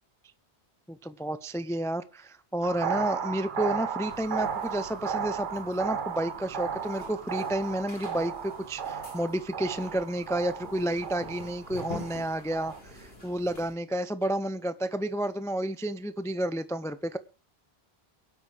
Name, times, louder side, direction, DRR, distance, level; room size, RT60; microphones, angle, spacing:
voice 1, 0.9-17.2, right 1 dB, 5° left, 13 dB, 0.4 m, -31 dB
sound 1, 2.6-12.8, right 6 dB, 50° right, 1.0 m, -34 dB
sound 2, 4.1-13.7, left 1 dB, 70° left, 3.7 m, -47 dB
22.5 x 8.4 x 3.4 m, 0.34 s
omnidirectional pair, 1.1 m